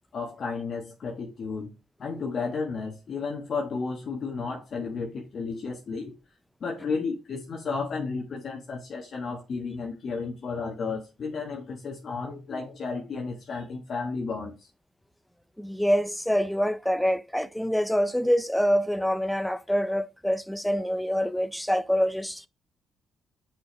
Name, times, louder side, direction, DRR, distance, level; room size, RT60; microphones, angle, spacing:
voice 1, 0.1-1.7 2.0-6.1 6.6-14.7, left 4 dB, 55° left, 1.4 m, -33 dB
voice 2, 15.6-22.5, equal, ahead, 0.5 m, -25 dB
6.2 x 5.1 x 3.8 m
cardioid pair, 90°, 0 cm